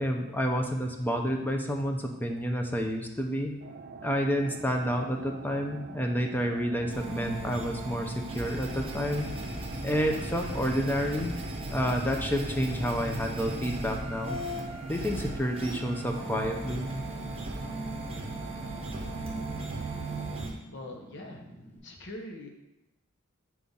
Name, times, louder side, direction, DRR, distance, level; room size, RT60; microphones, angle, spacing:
voice 1, 0.0-3.5 4.0-9.3 9.8-11.4 11.7-14.4 14.9-16.9, equal, 10° left, 3 dB, 0.5 m, -29 dB
sound 1, 3.6-20.5, right 3 dB, 45° right, 0.4 m, -42 dB
Fire, 4.3-21.8, equal, 30° left, 2.3 m, -53 dB
sound 2, 6.9-20.5, right 1 dB, 30° right, 0.8 m, -38 dB
voice 2, 20.7-21.4 21.8-22.5, left 1 dB, 60° left, 2 dB, 1.0 m, -42 dB
4.7 x 3.9 x 5.4 m, 0.94 s
head